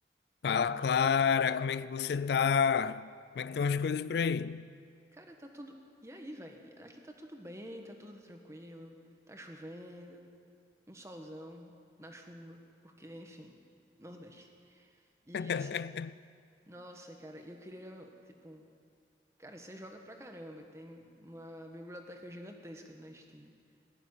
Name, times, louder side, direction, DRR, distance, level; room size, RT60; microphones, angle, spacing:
voice 1, 0.4-3.1 3.4-4.7 15.3-16.1, left 6 dB, 70° left, 0.3 m, -29 dB
voice 2, 5.1-5.8 6.0-9.0 9.3-10.3 10.9-11.7 12.0-13.6 14.0-15.9 16.7-18.7 19.4-23.5, equal, 15° right, 1.2 m, -48 dB
19.0 x 7.2 x 9.7 m
head